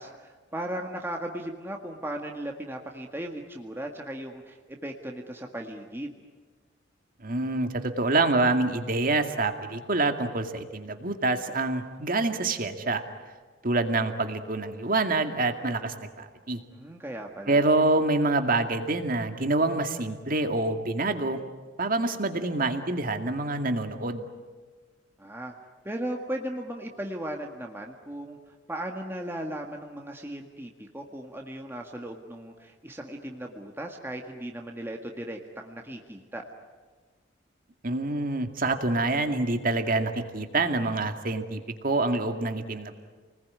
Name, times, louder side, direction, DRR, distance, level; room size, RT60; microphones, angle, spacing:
voice 1, 0.0-6.2 16.7-17.6 25.2-25.5 25.8-36.4, right 1 dB, 10° right, 2 dB, 1.8 m, -37 dB
voice 2, 7.2-13.0 13.6-16.6 17.5-21.4 21.8-24.3 37.8-43.0, right 2 dB, 50° right, 6 dB, 2.3 m, -26 dB
29.5 x 20.5 x 9.7 m, 1.4 s
head